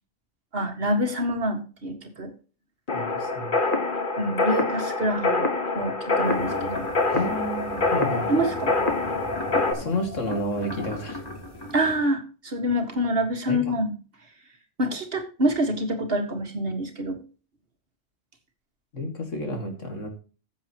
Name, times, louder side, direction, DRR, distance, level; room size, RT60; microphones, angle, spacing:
voice 1, 0.5-2.3 4.2-6.8 8.3-8.8 11.7-13.9 14.8-17.2, equal, 50° right, 5 dB, 2.1 m, -26 dB
voice 2, 2.9-3.6 7.1-8.4 9.7-11.2 13.5-13.8 18.9-20.1, left 1 dB, 90° left, 3 dB, 2.8 m, -31 dB
sound 1, 2.9-9.7, left 3 dB, 45° left, 1.6 m, -26 dB
sound 2, 6.2-12.0, left 1 dB, 20° left, 3.1 m, -35 dB
15.0 x 7.5 x 3.0 m, 0.36 s
omnidirectional pair, 1.3 m